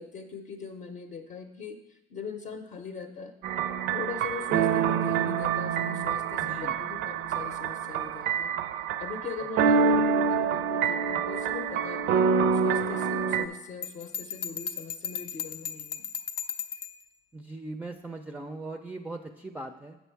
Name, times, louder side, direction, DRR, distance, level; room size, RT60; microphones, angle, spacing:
voice 1, 0.0-3.3 3.9-8.5 9.0-16.1, left 5 dB, 45° left, 4 dB, 0.7 m, -41 dB
sound 1, 3.4-13.5, right 6 dB, 80° right, 0.4 m, -26 dB
voice 2, 6.3-6.8 17.3-20.0, right 2 dB, 10° right, 4 dB, 0.4 m, -40 dB
Bell, 13.8-17.0, left 7 dB, 85° left, 0.5 m, -36 dB
8.2 x 6.2 x 4.6 m, 1.0 s
cardioid pair, 110°, 17 cm